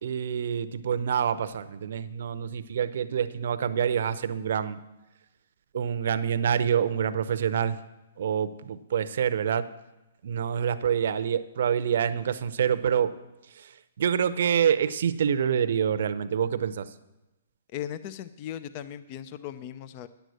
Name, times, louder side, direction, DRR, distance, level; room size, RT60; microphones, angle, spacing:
voice 1, 0.0-4.8 5.7-7.8 8.2-9.7 10.2-13.1 13.5-16.9, right 8 dB, 65° right, 12 dB, 0.7 m, -26 dB
voice 2, 17.7-20.1, left 10 dB, 35° left, 14 dB, 0.5 m, -37 dB
10.0 x 8.1 x 6.4 m, 1.0 s
hypercardioid pair, 145°, 0 cm